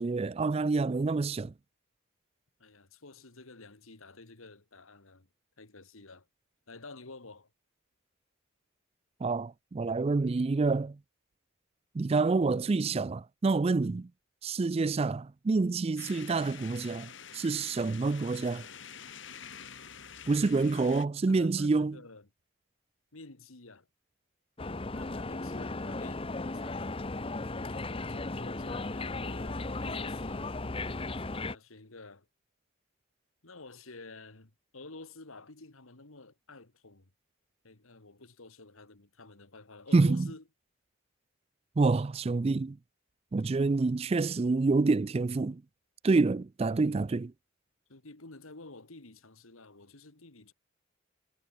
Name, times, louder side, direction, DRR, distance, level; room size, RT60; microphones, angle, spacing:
voice 1, 0.0-1.5 9.2-11.0 11.9-14.1 14.4-18.6 20.3-22.0 39.9-40.3 41.8-42.8 43.3-45.6 46.0-47.3, right 3 dB, 30° right, 0.3 m, -27 dB
voice 2, 2.6-5.3 5.6-6.3 6.7-7.5 20.7-20.9 21.3-22.3 23.1-23.9 24.9-26.8 27.6-30.5 30.9-32.3 33.4-37.1 37.6-40.4 47.9-50.5, left 3 dB, 75° left, 2.1 m, -50 dB
sound 1, 16.0-21.1, left 7 dB, 60° left, 3.4 m, -47 dB
sound 2, 24.6-31.6, left 2 dB, 25° left, 0.8 m, -36 dB
head